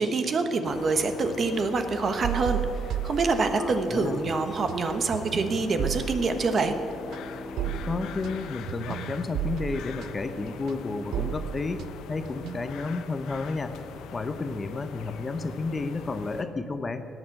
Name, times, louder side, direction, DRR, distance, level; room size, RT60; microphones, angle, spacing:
voice 1, 0.0-2.6 3.0-6.7, right 3 dB, 40° right, 8 dB, 1.2 m, -26 dB
sound 1, 0.6-16.4, left 7 dB, 80° left, 1.0 m, -43 dB
sound 2, 2.2-3.9 4.2-12.9, right 10 dB, 75° right, 0.5 m, -34 dB
voice 2, 3.6-4.3 7.7-13.7 14.1-17.1, left 3 dB, 25° left, 9 dB, 0.8 m, -32 dB
Bowed string instrument, 5.4-10.0, left 2 dB, 50° left, 2.0 m, -45 dB
17.0 x 9.2 x 7.8 m, 2.8 s
cardioid pair, 135°, 0 cm